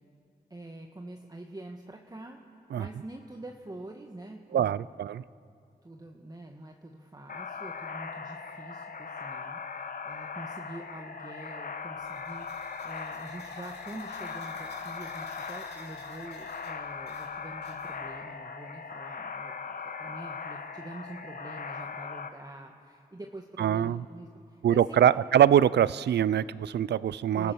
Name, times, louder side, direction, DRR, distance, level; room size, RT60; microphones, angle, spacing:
voice 1, 0.5-2.4 2.8-4.9 5.8-25.2 27.3-27.5, right 1 dB, 20° right, 2 dB, 1.7 m, -45 dB
voice 2, 4.5-5.2 23.6-24.0 24.6-27.5, right 10 dB, 70° right, 19 dB, 0.5 m, -23 dB
sound 1, 7.3-22.3, left 5 dB, 55° left, 1.3 m, -39 dB
sound 2, 12.0-18.2, left 3 dB, 70° left, 3.3 m, -48 dB
28.5 x 14.5 x 6.3 m, 2.5 s
cardioid pair, 55°, 18 cm